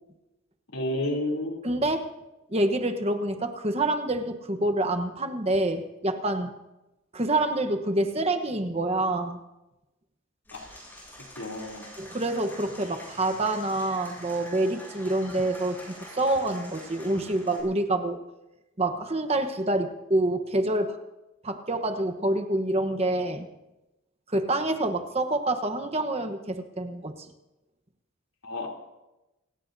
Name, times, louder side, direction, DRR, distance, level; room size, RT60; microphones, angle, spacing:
voice 1, 0.7-1.6 10.5-10.6 11.4-11.9 28.4-28.7, left 1 dB, 75° left, -1 dB, 3.2 m, -30 dB
voice 2, 1.6-2.1 2.5-6.5 7.1-9.4 12.0-18.2 18.8-21.0 21.4-23.5 24.3-27.1, right 2 dB, 30° right, 7 dB, 1.0 m, -27 dB
Applause / Crowd, 10.5-17.6, equal, 10° left, 7.6 m, -45 dB
28.5 x 18.0 x 2.7 m, 1.0 s
head